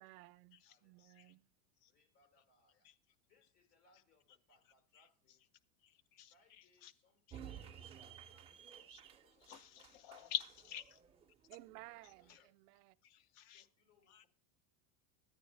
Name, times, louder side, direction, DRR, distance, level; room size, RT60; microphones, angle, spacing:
voice 1, 0.0-1.5 11.5-12.9, right 20 dB, 80° right, 0.5 m, -57 dB
voice 2, 1.9-2.9 3.3-5.4 6.3-10.2 11.5-12.5 13.5-14.3, left 3 dB, 80° left, 3.6 m, -74 dB
voice 3, 5.8-6.9 7.3-7.4 8.9-9.0 9.4-11.0 12.3-12.4 13.0-13.7 14.1-14.3, left 11 dB, 55° left, 0.6 m, -47 dB
sound 1, 7.3-12.4, right 9 dB, 15° right, 0.4 m, -55 dB
10.5 x 9.2 x 3.2 m
supercardioid pair, 140°, 45 cm